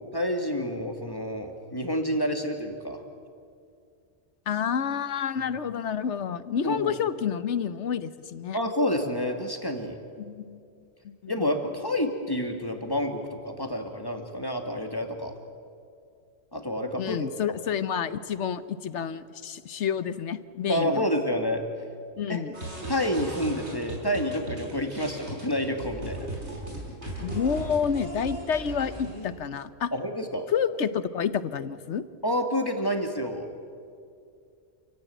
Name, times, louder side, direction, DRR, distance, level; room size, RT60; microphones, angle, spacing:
voice 1, 0.0-3.0 6.6-6.9 8.5-9.9 11.3-15.3 16.5-17.3 20.7-21.6 22.3-22.4 22.9-26.3 29.9-30.5 32.2-33.5, equal, 20° left, 4 dB, 2.1 m, -29 dB
voice 2, 4.5-8.6 10.2-10.6 11.2-11.3 17.0-21.0 22.2-22.5 27.2-29.9 30.5-32.1, left 7 dB, 80° left, 14 dB, 1.2 m, -29 dB
sound 1, 22.5-29.3, right 1 dB, 75° right, 6.0 m, -37 dB
28.5 x 16.5 x 9.2 m, 2.4 s
omnidirectional pair, 1.2 m